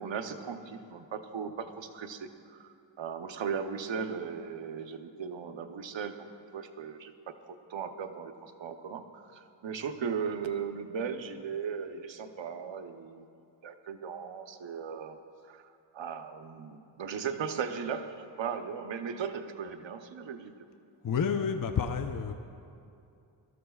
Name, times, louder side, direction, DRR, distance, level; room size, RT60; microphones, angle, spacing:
voice 1, 0.0-6.3 6.5-13.3 13.6-15.2 15.4-20.5, right 6 dB, 75° right, 8 dB, 0.9 m, -37 dB
voice 2, 21.0-22.3, left 6 dB, 45° left, 6 dB, 0.8 m, -29 dB
23.0 x 13.5 x 2.4 m, 2.6 s
cardioid pair, 45°, 46 cm